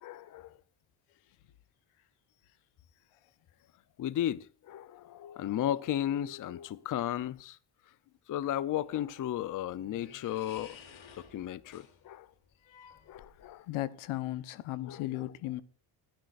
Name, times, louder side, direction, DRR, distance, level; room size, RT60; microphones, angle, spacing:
voice 1, 0.0-0.6 4.0-7.6 8.3-10.8 11.2-12.3 13.1-13.7 14.8-15.3, left 11 dB, 40° left, 0.6 m, -35 dB
sound 1, 8.9-13.7, left 7 dB, 70° left, 3.0 m, -55 dB
voice 2, 13.7-15.6, left 16 dB, 90° left, 1.0 m, -35 dB
29.5 x 10.5 x 2.5 m
cardioid pair, 125°, 48 cm